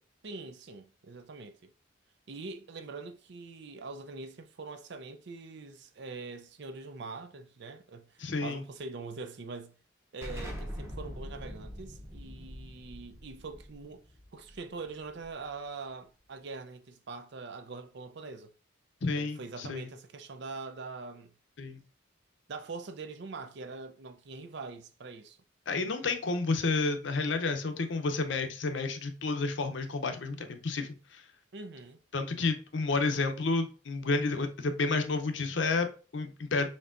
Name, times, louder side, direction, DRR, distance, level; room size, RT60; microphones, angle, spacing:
voice 1, 0.2-1.7 2.3-9.8 10.1-14.0 14.3-18.5 19.1-21.3 22.5-25.4 31.5-32.0, right 3 dB, 60° right, 0.5 m, -43 dB
voice 2, 8.2-8.6 19.0-19.9 21.6-21.8 25.7-31.2 32.1-36.7, left 3 dB, 65° left, 0.6 m, -30 dB
Explosion, 10.2-15.6, equal, 15° right, 1.0 m, -43 dB
4.3 x 3.3 x 2.5 m
head